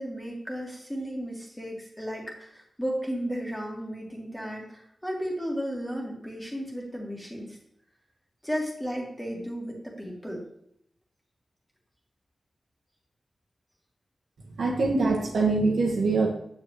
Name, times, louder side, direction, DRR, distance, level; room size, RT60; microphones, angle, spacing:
voice 1, 0.0-7.6 8.4-10.4, equal, 10° left, -2 dB, 2.2 m, -34 dB
voice 2, 14.6-16.3, right 3 dB, 85° right, -1 dB, 1.6 m, -23 dB
7.9 x 6.8 x 3.1 m, 0.73 s
cardioid pair, 70°, 0 cm